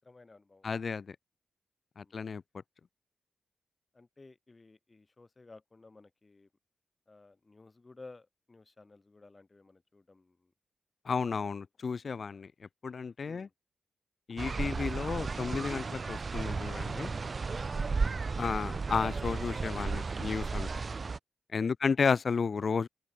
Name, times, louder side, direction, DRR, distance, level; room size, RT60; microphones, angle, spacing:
voice 1, 0.0-0.8 2.0-2.2 3.9-6.5 7.1-10.5 13.3-13.5 17.5-18.3 21.6-21.9, left 3 dB, 35° left, 7.1 m, -56 dB
voice 2, 0.6-1.2 2.0-2.4 11.1-12.5 12.8-13.5 14.3-17.1 18.4-20.7 21.5-22.9, left 5 dB, 60° left, 0.8 m, -32 dB
sound 1, 14.4-21.2, right 4 dB, 50° right, 0.5 m, -34 dB
open air
cardioid pair, 60°, 0 cm